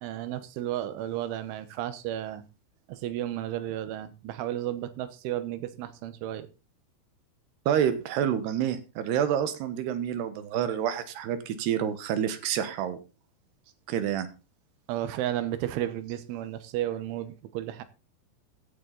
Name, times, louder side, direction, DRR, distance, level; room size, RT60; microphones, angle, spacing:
voice 1, 0.0-2.5 2.9-6.5 14.9-17.8, right 12 dB, 90° right, 13 dB, 3.6 m, -33 dB
voice 2, 7.7-13.0 13.9-14.3, right 9 dB, 70° right, 12 dB, 3.1 m, -28 dB
15.5 x 9.9 x 4.0 m, 0.31 s
omnidirectional pair, 5.4 m